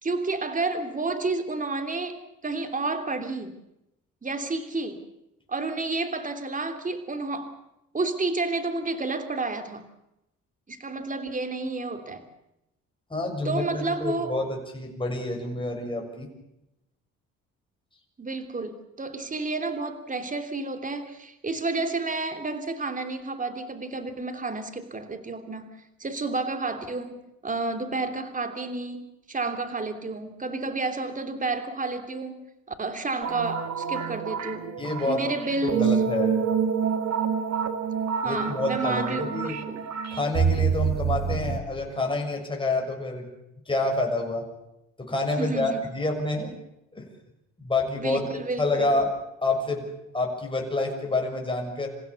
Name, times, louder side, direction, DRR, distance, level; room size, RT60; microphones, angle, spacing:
voice 1, 0.0-2.2 2.4-3.6 4.2-5.0 5.5-7.6 7.9-9.9 10.7-12.2 13.4-14.3 18.2-32.4 32.7-34.8 35.1-36.0 38.2-39.8 45.4-45.8 47.9-48.9, right 3 dB, 25° right, 8 dB, 3.1 m, -30 dB
voice 2, 13.1-16.3 34.8-35.2 35.6-36.4 38.2-39.6 40.1-43.3 43.7-44.4 45.0-46.6 46.9-47.1 47.6-48.3 48.6-51.9, left 2 dB, 15° left, 1 dB, 6.6 m, -28 dB
sound 1, 33.2-41.6, right 7 dB, 65° right, 2.4 m, -27 dB
28.0 x 16.0 x 7.0 m, 0.86 s
cardioid pair, 90°, 30 cm